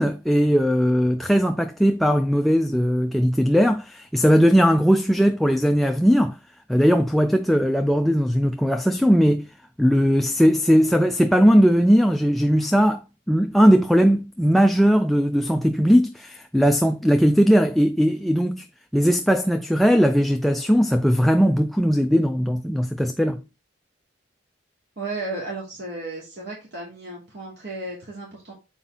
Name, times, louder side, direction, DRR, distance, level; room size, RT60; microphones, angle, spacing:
voice 1, 0.0-6.4 6.7-9.5 9.8-13.0 13.3-18.7 18.9-23.4, equal, ahead, 0.4 m, -19 dB
voice 2, 25.0-28.5, right 2 dB, 55° right, 2.8 m, -34 dB
7.4 x 4.8 x 3.9 m
head